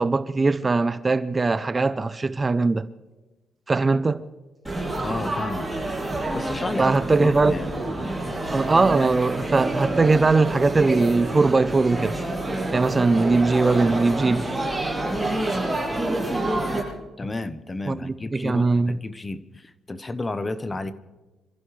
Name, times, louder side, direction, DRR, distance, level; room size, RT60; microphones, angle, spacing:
voice 1, 0.0-2.9 3.7-4.2 6.8-7.6 8.5-12.2 12.7-14.4 17.9-19.0, right 3 dB, 25° right, 0.6 m, -20 dB
Laughter / Chatter / Crowd, 4.6-16.8, right 1 dB, 5° right, 7.3 m, -28 dB
voice 2, 5.0-5.7 6.3-7.7 17.2-20.9, left 2 dB, 20° left, 1.0 m, -32 dB
27.5 x 15.0 x 3.3 m
cardioid pair, 105°, 0 cm